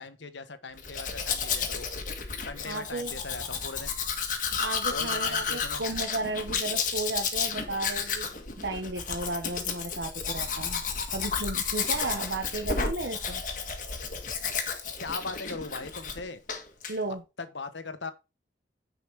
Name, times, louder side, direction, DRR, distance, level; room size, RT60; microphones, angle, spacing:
voice 1, 0.0-1.9 2.4-4.0 4.9-5.8 15.0-16.4 17.4-18.1, left 3 dB, 80° left, 1.2 m, -39 dB
Domestic sounds home sounds, 0.8-16.2 16.5-16.9, left 6 dB, 45° left, 1.6 m, -32 dB
voice 2, 2.6-3.2 4.6-8.3 8.6-10.8 11.1-13.4 16.9-17.2, right 2 dB, 70° right, 1.2 m, -34 dB
9.7 x 5.2 x 4.7 m
head